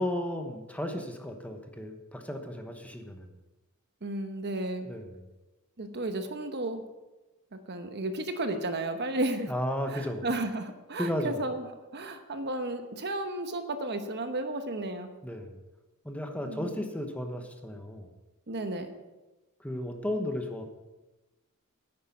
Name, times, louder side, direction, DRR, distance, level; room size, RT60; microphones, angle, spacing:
voice 1, 0.0-3.3 4.8-5.3 9.5-10.3 11.0-11.4 15.2-15.6 16.0-18.1 19.6-20.6, left 1 dB, 5° left, 5 dB, 1.1 m, -34 dB
voice 2, 4.0-4.9 5.8-6.8 7.7-9.5 9.9-11.6 11.9-15.1 16.4-16.8 18.5-18.9, right 2 dB, 50° right, 7 dB, 1.0 m, -33 dB
10.0 x 9.3 x 6.0 m, 1.1 s
head